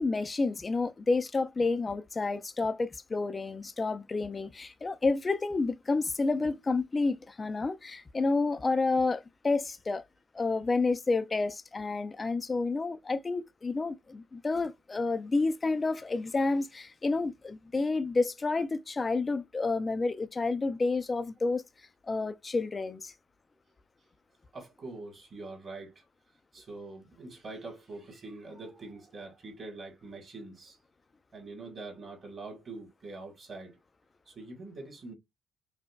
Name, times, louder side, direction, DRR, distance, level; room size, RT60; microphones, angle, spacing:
voice 1, 0.0-10.0 10.3-21.6 22.1-23.1, left 3 dB, 20° left, 0.4 m, -30 dB
voice 2, 24.5-26.0 26.5-30.8 31.3-33.8 34.2-35.1, right 3 dB, 30° right, 1.5 m, -44 dB
5.0 x 2.1 x 2.3 m
cardioid pair, 170°, 0 cm